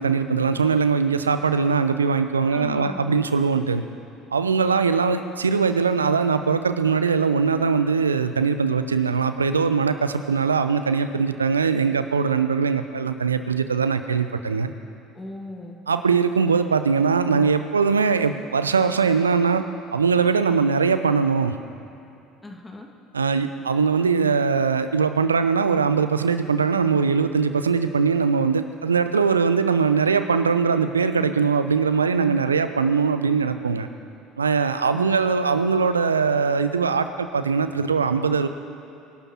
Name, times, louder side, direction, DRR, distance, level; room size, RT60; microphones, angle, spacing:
voice 1, 0.0-3.8 4.3-14.8 15.9-19.6 19.9-21.6 23.1-33.9 34.4-38.5, right 5 dB, 85° right, 10 dB, 0.6 m, -21 dB
voice 2, 2.5-3.2 15.2-15.8 22.4-22.9 34.9-35.2, left 2 dB, 15° left, 2 dB, 2.0 m, -38 dB
25.5 x 12.0 x 4.4 m, 2.7 s
figure-of-eight pair, 60°, 0 cm